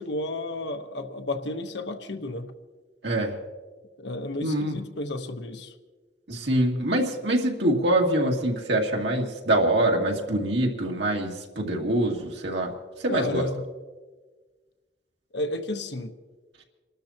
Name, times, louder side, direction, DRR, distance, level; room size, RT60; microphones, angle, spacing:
voice 1, 0.0-2.5 4.0-5.7 13.1-13.7 15.3-16.1, left 2 dB, 85° left, 6 dB, 1.1 m, -32 dB
voice 2, 3.0-3.3 4.4-4.8 6.3-12.7 13.0-13.4, right 1 dB, 90° right, 0 dB, 2.2 m, -24 dB
29.0 x 12.5 x 2.9 m, 1.4 s
head